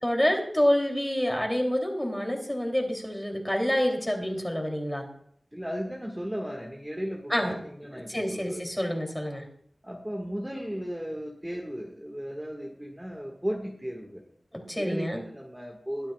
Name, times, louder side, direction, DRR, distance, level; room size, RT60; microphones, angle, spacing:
voice 1, 0.0-5.0 7.3-7.5 7.9-9.4 14.5-15.2, equal, 10° left, 2 dB, 3.0 m, -27 dB
voice 2, 5.5-8.6 9.8-14.2 14.8-16.1, equal, 10° right, 0 dB, 1.7 m, -35 dB
22.0 x 8.8 x 2.4 m, 0.65 s
wide cardioid pair, 60°, 0 cm